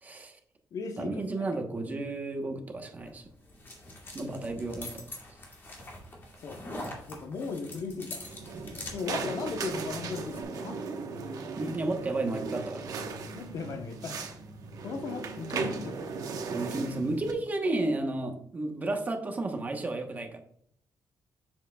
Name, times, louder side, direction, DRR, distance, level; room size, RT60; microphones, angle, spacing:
voice 1, 0.0-0.4 1.0-3.2 4.1-5.1 11.6-12.9 16.5-20.4, right 2 dB, 25° right, 4 dB, 1.0 m, -32 dB
voice 2, 0.7-1.5 4.1-4.7 6.4-6.8 7.1-8.2 8.9-10.8 13.3-14.3 14.8-16.1, left 4 dB, 60° left, 7 dB, 0.9 m, -37 dB
sound 1, 3.0-10.4, left 2 dB, 35° left, 2.1 m, -44 dB
sound 2, 8.2-17.3, right 4 dB, 70° right, 1.1 m, -37 dB
7.6 x 7.2 x 2.3 m, 0.66 s
wide cardioid pair, 165°, 7 cm